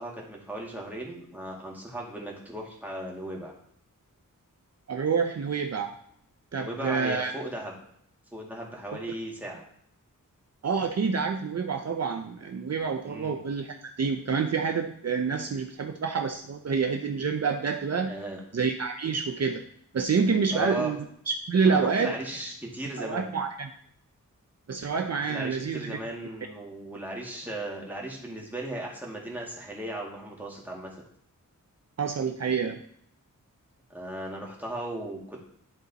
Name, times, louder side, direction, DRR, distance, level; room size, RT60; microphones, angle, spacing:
voice 1, 0.0-3.5 6.5-7.8 8.3-9.6 13.0-13.4 18.1-18.4 20.5-20.9 21.6-23.3 25.3-31.0 33.9-35.4, right 1 dB, 5° right, -3 dB, 2.1 m, -37 dB
voice 2, 4.9-5.9 6.5-7.3 10.6-18.1 18.5-19.6 19.9-21.0 21.3-22.2 23.0-23.7 24.7-26.0 32.0-32.8, right 5 dB, 50° right, 5 dB, 0.6 m, -27 dB
11.5 x 4.0 x 4.1 m, 0.67 s
wide cardioid pair, 90°, 32 cm